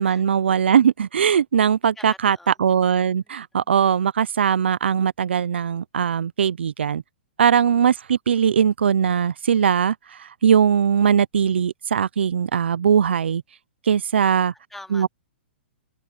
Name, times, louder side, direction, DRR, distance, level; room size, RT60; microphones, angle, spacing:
voice 1, 0.0-7.0 7.4-13.4 13.8-14.5 14.9-15.1, right 8 dB, 75° right, 0.7 m, -20 dB
voice 2, 2.0-2.6 3.3-3.5 14.5-15.1, left 1 dB, 5° left, 3.0 m, -44 dB
hypercardioid pair, 125°, 6 cm